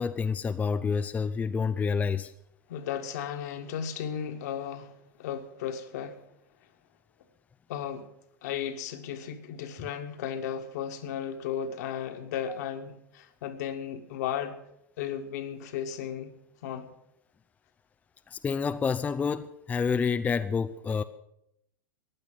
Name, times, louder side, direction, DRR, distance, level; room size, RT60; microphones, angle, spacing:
voice 1, 0.0-2.3 12.5-12.6 18.3-21.0, left 5 dB, 15° left, 0.5 m, -28 dB
voice 2, 2.7-6.2 7.7-8.1 8.4-14.6 15.0-16.3 16.6-16.9, left 8 dB, 55° left, 1.8 m, -35 dB
15.5 x 10.5 x 7.6 m
figure-of-eight pair, 100°, 10 cm